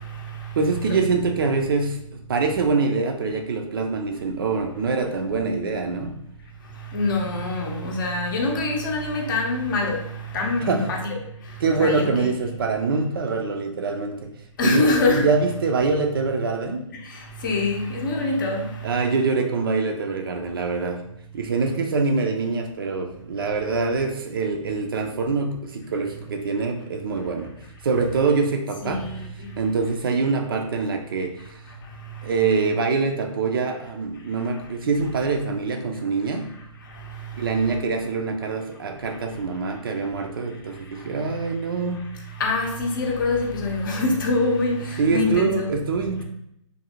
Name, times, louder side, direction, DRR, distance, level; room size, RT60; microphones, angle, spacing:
voice 1, 0.6-2.0 2.3-6.2 10.6-10.8 11.6-14.2 14.6-14.8 15.1-16.8 18.8-21.0 21.3-27.5 27.8-29.0 29.6-31.6 32.2-36.5 37.4-42.1 45.0-46.2, right 4 dB, 45° right, 0.4 m, -24 dB
voice 2, 6.9-10.0 10.3-11.2 11.8-12.3 14.6-15.3 17.0-18.7 28.8-29.5 42.4-45.7, left 3 dB, 40° left, 0.6 m, -24 dB
2.6 x 2.5 x 2.8 m
figure-of-eight pair, 135°, 17 cm